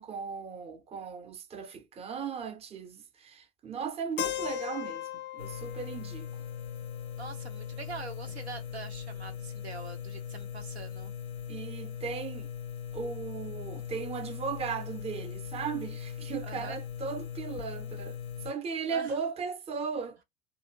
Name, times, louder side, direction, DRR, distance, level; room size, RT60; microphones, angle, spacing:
voice 1, 0.0-5.1 5.3-6.3 11.5-12.5 12.9-20.2, right 6 dB, 20° right, 0.6 m, -37 dB
Keyboard (musical), 4.2-8.1, left 13 dB, 40° left, 0.5 m, -39 dB
sound 1, 5.4-18.5, left 8 dB, 90° left, 0.5 m, -40 dB
voice 2, 7.2-11.1 16.4-16.8 18.9-19.2, right 4 dB, 85° right, 0.7 m, -44 dB
2.7 x 2.4 x 2.6 m
figure-of-eight pair, 70°, 32 cm